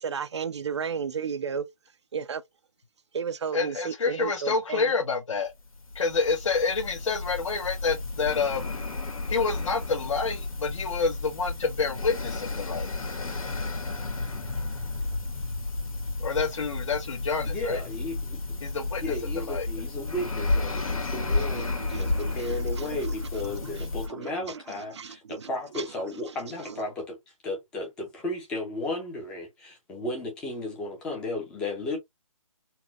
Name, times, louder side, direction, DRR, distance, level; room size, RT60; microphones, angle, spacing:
voice 1, 0.0-1.7 2.1-2.4 3.1-4.9 20.9-21.1 21.6-23.1 23.6-25.8 26.3-26.8, right 6 dB, 55° right, 0.4 m, -35 dB
voice 2, 3.5-5.5 5.9-8.7 9.3-12.9 16.2-17.8 18.6-19.0 19.5-19.7, left 4 dB, 60° left, 1.0 m, -28 dB
sound 1, 5.6-24.1, left 2 dB, 85° left, 1.6 m, -32 dB
voice 3, 17.5-18.4 19.0-27.2 27.4-32.0, left 2 dB, 5° left, 0.5 m, -34 dB
4.1 x 2.2 x 2.8 m
hypercardioid pair, 165°, 18 cm